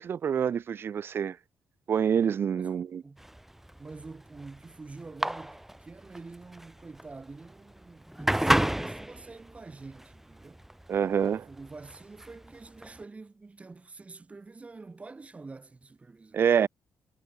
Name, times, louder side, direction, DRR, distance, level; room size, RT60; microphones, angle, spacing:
voice 1, 0.0-1.4 1.9-3.0 10.9-11.5 16.3-16.7, right 7 dB, 45° right, 0.4 m, -26 dB
voice 2, 2.6-3.2 3.6-10.7 11.5-16.4, right 3 dB, 25° right, 3.4 m, -47 dB
sound 1, 3.2-13.0, right 1 dB, 5° right, 0.9 m, -32 dB
cardioid pair, 105°, 5 cm